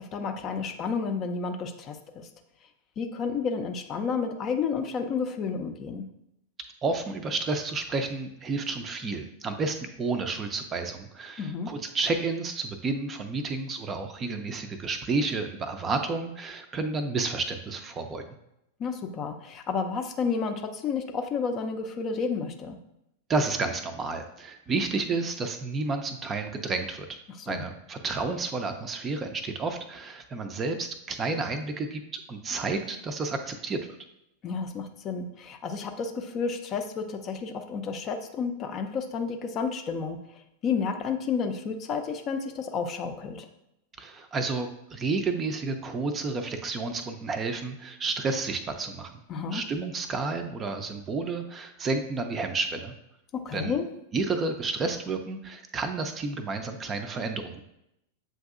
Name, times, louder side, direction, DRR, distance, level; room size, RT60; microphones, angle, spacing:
voice 1, 0.1-2.3 3.0-6.1 11.4-11.7 18.8-22.8 27.5-27.6 34.4-40.2 40.6-43.5 49.3-49.6 53.4-53.9, left 5 dB, 30° left, 6 dB, 0.5 m, -31 dB
voice 2, 6.8-18.3 23.3-27.1 27.5-33.8 44.0-49.1 49.5-52.9 53.5-53.8 54.1-57.6, right 3 dB, 25° right, 7 dB, 0.5 m, -31 dB
7.5 x 2.6 x 2.4 m, 0.82 s
figure-of-eight pair, 95°, 0 cm